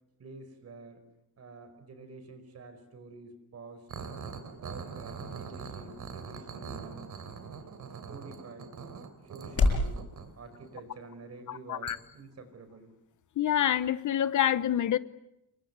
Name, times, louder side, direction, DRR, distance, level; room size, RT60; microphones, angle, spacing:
voice 1, 0.2-1.0 1.4-4.1 4.5-7.1 8.1-8.8 9.2-10.0 10.4-12.9, right 3 dB, 45° right, 9 dB, 4.9 m, -48 dB
sound 1, 3.7-9.9, left 3 dB, 40° left, 6.9 m, -35 dB
sound 2, 3.9-10.9 11.9-12.0, right 6 dB, 60° right, 3.3 m, -42 dB
voice 2, 11.5-12.0 13.4-15.0, left 10 dB, 55° left, 14 dB, 0.9 m, -27 dB
29.5 x 23.0 x 8.1 m, 0.86 s
wide cardioid pair, 170°, 35 cm